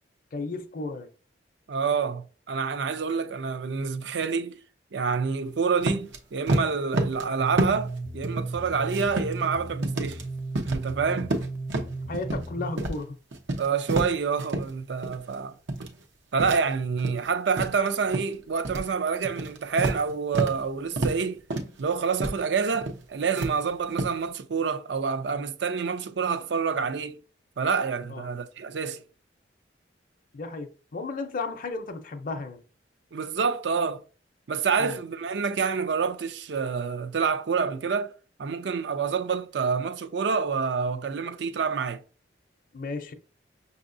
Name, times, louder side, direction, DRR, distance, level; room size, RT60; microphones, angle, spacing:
voice 1, 0.3-1.1 11.0-11.2 12.1-13.2 28.1-28.3 30.3-32.6 34.8-35.0 42.7-43.1, left 3 dB, 50° left, 0.5 m, -34 dB
voice 2, 1.7-4.6 4.9-10.2 10.6-11.3 13.6-15.5 16.3-21.4 21.8-27.2 27.6-29.0 33.1-34.0 34.5-38.1 38.4-42.0, right 5 dB, 65° right, 0.5 m, -27 dB
sound 1, 5.8-6.2 6.5-7.3 7.6-8.0 8.2-9.5 9.8-10.2 10.6-10.9 11.2-12.5 12.8-13.0 13.3-14.7 15.0-15.3 15.7-16.0 16.4-17.3 17.6-18.3 18.6-18.9 19.2-20.6 21.0-21.2 21.5-21.8 22.2-22.4 22.7-23.0 23.3-24.1, right 2 dB, 85° right, 0.8 m, -29 dB
sound 2, 7.4-12.7, right 2 dB, 10° right, 0.5 m, -36 dB
6.0 x 2.8 x 2.6 m
head